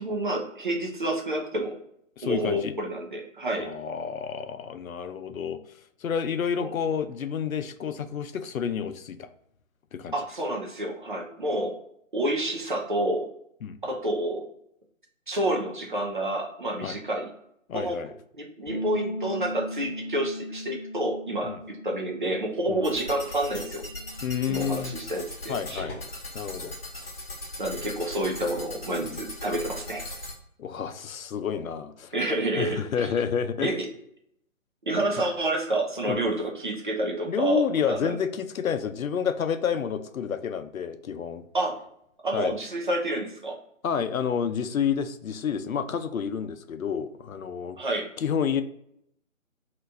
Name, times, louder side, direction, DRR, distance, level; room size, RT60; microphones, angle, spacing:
voice 1, 0.0-1.7 2.2-3.7 6.6-6.7 10.1-11.7 12.1-13.3 13.8-14.4 15.3-17.3 17.7-18.0 18.3-23.8 24.5-25.8 27.6-30.0 32.1-33.1 33.6-33.9 34.8-38.1 41.5-41.8 42.2-43.6 47.8-48.1, right 1 dB, 40° right, 0 dB, 0.6 m, -29 dB
voice 2, 2.2-2.7 3.5-5.6 6.0-9.3 9.9-10.1 13.6-13.8 16.8-17.0 17.7-18.1 21.4-21.6 22.7-22.8 24.2-25.0 25.5-26.0 26.3-26.7 29.0-29.2 30.6-32.1 32.6-33.8 36.1-36.2 37.3-41.4 42.3-42.5 43.8-47.8 48.2-48.6, left 7 dB, 80° left, 11 dB, 0.5 m, -29 dB
sound 1, 18.7-24.9, left 1 dB, 20° right, 1.2 m, -38 dB
sound 2, 22.8-30.3, left 1 dB, 45° left, 1.0 m, -39 dB
2.9 x 2.5 x 3.2 m, 0.74 s
figure-of-eight pair, 155°, 41 cm